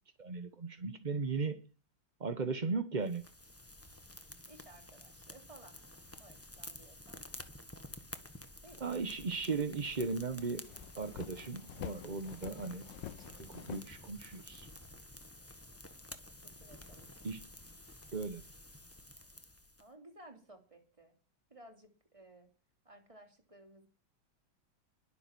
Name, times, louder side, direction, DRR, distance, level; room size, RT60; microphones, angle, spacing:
voice 1, 0.2-1.6 2.2-3.2 8.8-10.7 11.0-12.9 13.4-14.7 17.2-17.4 18.1-18.4, right 4 dB, 35° right, 9 dB, 0.8 m, -37 dB
sound 1, 3.0-19.9, left 1 dB, 10° left, 1.2 m, -52 dB
voice 2, 4.5-5.8 6.2-7.2 8.6-8.9 16.4-17.1 19.8-21.1 21.5-22.5 22.8-23.9, right 1 dB, 15° right, 4 dB, 3.1 m, -57 dB
sound 2, 10.4-14.6, left 11 dB, 70° left, 1.5 m, -48 dB
21.5 x 7.8 x 6.1 m, 0.37 s
omnidirectional pair, 2.1 m